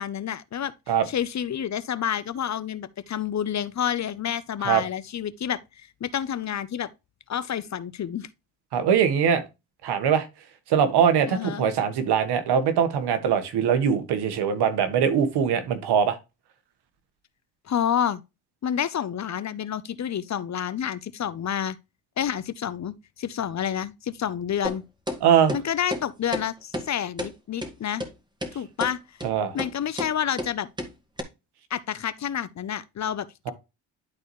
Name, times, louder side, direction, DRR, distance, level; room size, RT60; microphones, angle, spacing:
voice 1, 0.0-0.7 1.1-5.6 6.0-6.9 7.3-8.3 11.3-11.7 17.7-18.2 18.6-21.8 22.2-24.8 25.5-28.0 28.5-29.0 29.5-30.7 31.7-33.5, left 9 dB, 45° left, 0.8 m, -29 dB
voice 2, 8.7-9.4 9.8-10.3 10.7-16.2 25.2-25.6 29.2-29.6, right 8 dB, 80° right, 1.6 m, -22 dB
sound 1, 24.6-24.8 25.1-25.2 25.5-25.6 25.9-26.0 26.3-26.4 26.7-26.9 27.2-27.3 27.6-27.7 28.0-28.1 28.4-28.5 28.8-28.9 29.2-29.3 29.6-29.7 30.0-30.1 30.4-30.5 30.8-30.9 31.2-31.3, equal, 10° right, 1.8 m, -30 dB
11.5 x 4.1 x 3.2 m
cardioid pair, 85°, 39 cm